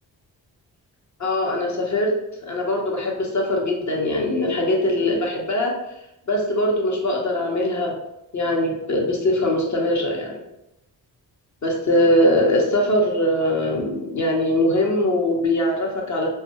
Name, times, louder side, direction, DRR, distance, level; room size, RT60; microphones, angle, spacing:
voice 1, 1.2-2.1 2.4-5.7 6.3-7.9 8.3-10.4 11.6-16.3, left 1 dB, 40° left, -1 dB, 0.9 m, -21 dB
2.6 x 2.3 x 2.9 m, 0.88 s
supercardioid pair, 45°, 42 cm